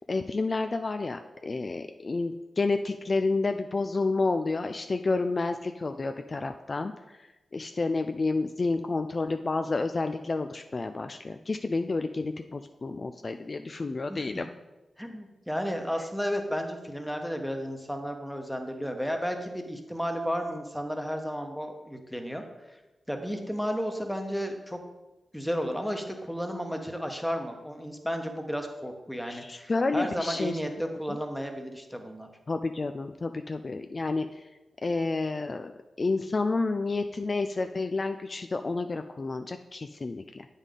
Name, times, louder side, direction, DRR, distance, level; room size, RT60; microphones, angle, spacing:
voice 1, 0.1-6.9 7.5-14.4 29.2-30.6 31.1-31.2 32.5-34.3 34.8-40.5, left 3 dB, 45° left, 7 dB, 0.3 m, -30 dB
voice 2, 14.1-14.4 15.0-22.4 23.1-24.8 25.3-32.3, equal, ahead, 4 dB, 1.1 m, -33 dB
8.1 x 5.4 x 3.8 m, 1.1 s
cardioid pair, 50°, 0 cm